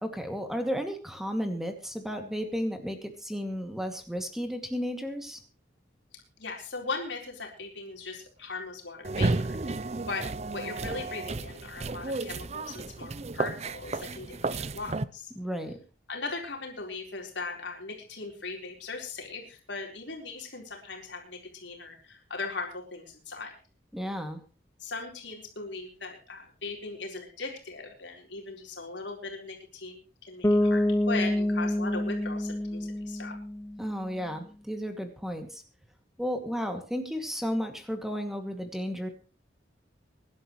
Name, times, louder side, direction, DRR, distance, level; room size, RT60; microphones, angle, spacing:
voice 1, 0.0-5.4 15.4-15.8 23.9-24.4 33.8-35.6 36.2-39.1, equal, ahead, 5 dB, 2.4 m, -33 dB
voice 2, 6.4-10.2 10.5-15.3 16.1-23.5 24.8-30.8 31.1-33.3 36.7-36.8, left 3 dB, 75° left, 1 dB, 4.3 m, -39 dB
sound 1, 9.0-15.1, right 3 dB, 35° right, 0.6 m, -32 dB
Bass guitar, 30.4-34.2, left 1 dB, 15° left, 0.8 m, -27 dB
24.5 x 11.5 x 3.2 m, 0.34 s
head